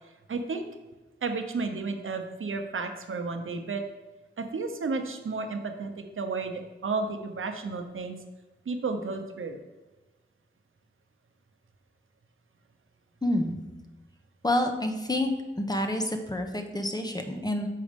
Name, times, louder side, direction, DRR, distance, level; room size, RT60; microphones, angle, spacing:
voice 1, 0.3-0.7 1.2-3.8 4.4-8.2 8.7-9.6, right 4 dB, 85° right, 6 dB, 0.8 m, -32 dB
voice 2, 13.2-13.5 14.4-15.3 15.6-17.7, left 1 dB, 20° left, 5 dB, 0.9 m, -28 dB
6.6 x 5.1 x 5.2 m, 1.2 s
wide cardioid pair, 70°, 20 cm